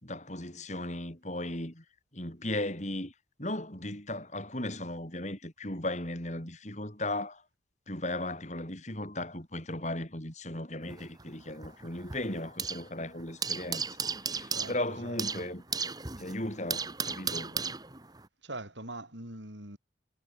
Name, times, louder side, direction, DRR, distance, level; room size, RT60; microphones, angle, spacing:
voice 1, 0.0-1.8 2.1-3.1 3.4-7.4 7.9-13.8 14.2-15.6 16.2-17.6, left 1 dB, 40° left, 5.3 m, -36 dB
sound 1, 10.8-12.9 13.2-18.3, right 5 dB, 20° right, 2.4 m, -36 dB
voice 2, 14.5-15.4 18.4-19.8, right 2 dB, 75° right, 7.1 m, -43 dB
head